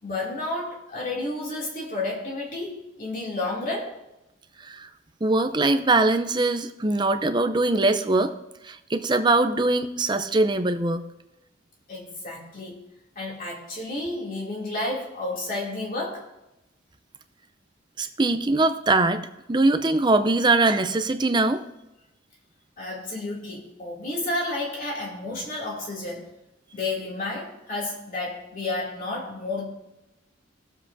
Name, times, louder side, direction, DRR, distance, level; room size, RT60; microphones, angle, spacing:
voice 1, 0.0-4.0 11.9-12.8 13.2-16.2 22.8-26.3 26.7-29.6, left 2 dB, 40° left, -3 dB, 2.7 m, -31 dB
voice 2, 5.2-8.3 8.6-11.0 18.0-19.2 19.5-21.6, right 2 dB, 20° right, 9 dB, 0.5 m, -22 dB
19.5 x 7.5 x 2.7 m, 0.93 s
head